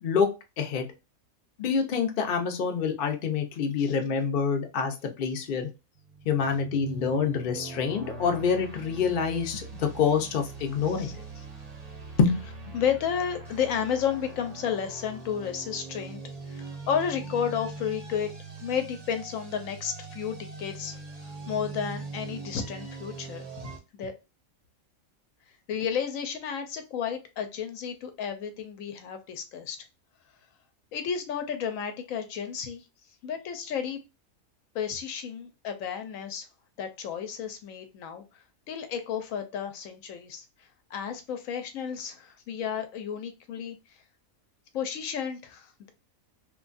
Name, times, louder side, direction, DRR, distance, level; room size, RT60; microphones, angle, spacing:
voice 1, 0.6-0.9 1.6-5.7 6.2-11.2 12.2-12.4, left 6 dB, 55° left, 4 dB, 0.6 m, -26 dB
sound 1, 6.0-23.8, right 3 dB, 45° right, 0.5 m, -42 dB
voice 2, 12.7-16.2 16.5-18.3 18.6-24.1 25.7-29.8 30.9-32.8 33.2-34.0 34.7-36.5 36.8-38.2 38.7-40.4 40.9-43.8 44.7-45.9, left 7 dB, 75° left, 7 dB, 1.0 m, -32 dB
3.0 x 2.2 x 2.4 m, 0.27 s
omnidirectional pair, 1.5 m